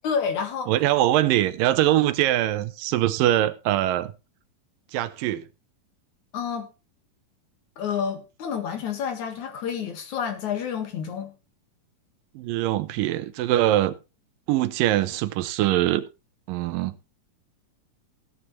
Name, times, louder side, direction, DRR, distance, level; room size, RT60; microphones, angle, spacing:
voice 1, 0.0-0.7 6.3-6.7 7.8-11.3, left 7 dB, 65° left, 3.0 m, -29 dB
voice 2, 0.7-4.1 4.9-5.5 12.4-13.9 14.5-16.0 16.5-16.9, right 14 dB, 85° right, 2.4 m, -22 dB
16.0 x 9.6 x 3.1 m
omnidirectional pair, 3.8 m